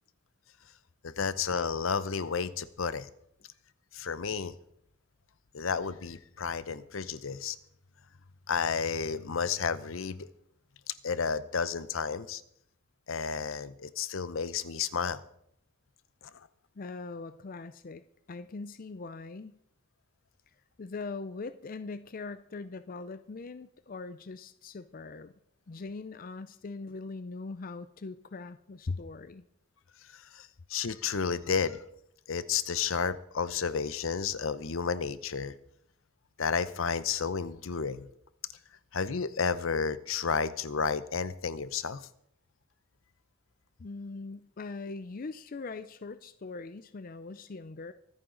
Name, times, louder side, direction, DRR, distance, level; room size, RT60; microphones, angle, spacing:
voice 1, 1.0-3.1 3.9-4.5 5.5-7.6 8.5-10.3 10.9-12.4 13.1-15.2 16.2-16.3 30.1-31.8 32.3-35.6 36.4-38.1 38.9-42.1, left 5 dB, 75° left, 15 dB, 0.7 m, -32 dB
voice 2, 16.8-19.6 20.8-25.3 25.7-29.4 43.8-47.9, left 3 dB, 45° left, 12 dB, 0.5 m, -41 dB
24.0 x 9.0 x 3.9 m, 0.73 s
head